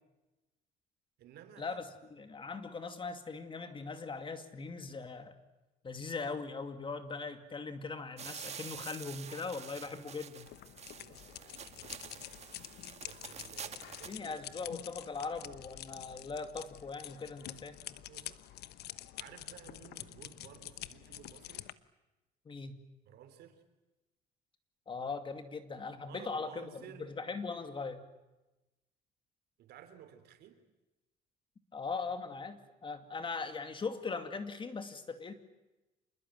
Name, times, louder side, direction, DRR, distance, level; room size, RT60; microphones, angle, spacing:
voice 1, 1.2-1.8 10.9-12.5 13.0-14.4 14.6-14.7 18.1-18.5 19.2-21.7 23.0-23.6 26.0-27.2 29.6-30.6, right 9 dB, 75° right, 9 dB, 3.6 m, -55 dB
voice 2, 2.1-5.4 5.8-10.5 14.0-17.8 22.5-22.8 24.9-28.0 31.7-35.3, left 4 dB, 30° left, 9 dB, 2.5 m, -40 dB
sound 1, 8.2-14.2, right 7 dB, 40° right, 1.8 m, -48 dB
sound 2, 10.4-21.7, left 14 dB, 75° left, 1.1 m, -48 dB
27.5 x 21.0 x 9.3 m, 1.0 s
cardioid pair, 110°, 17 cm